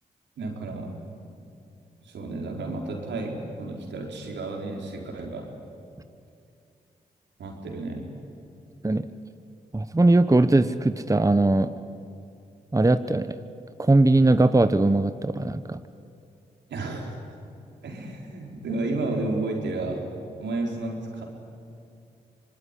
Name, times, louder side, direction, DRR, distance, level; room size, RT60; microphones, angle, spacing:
voice 1, 0.4-0.9 2.0-5.5 7.4-8.1 16.7-17.2 17.8-20.1 20.4-21.2, right 2 dB, 80° right, 1 dB, 4.4 m, -32 dB
voice 2, 9.7-11.7 12.7-13.3 13.8-15.8, right 2 dB, 20° right, 11 dB, 1.1 m, -20 dB
25.5 x 21.0 x 9.9 m, 2.5 s
supercardioid pair, 45°, 18 cm